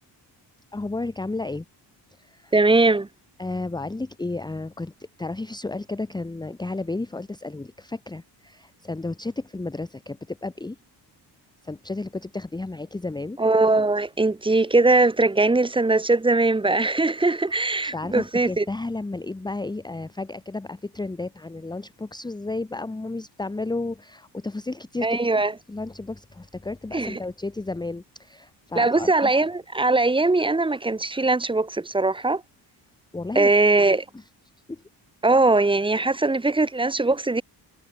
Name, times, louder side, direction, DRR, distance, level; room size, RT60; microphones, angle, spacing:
voice 1, 0.7-1.6 2.2-2.5 3.4-10.8 11.6-13.4 17.8-25.2 25.7-29.3 33.1-33.5 34.1-34.2 34.7-34.8, left 2 dB, 10° left, 1.4 m, -32 dB
voice 2, 2.5-3.1 13.4-18.6 25.0-25.5 26.9-27.2 28.8-32.4 33.3-34.0 35.2-37.4, right 2 dB, 10° right, 1.0 m, -20 dB
cardioid pair, 155°, 43 cm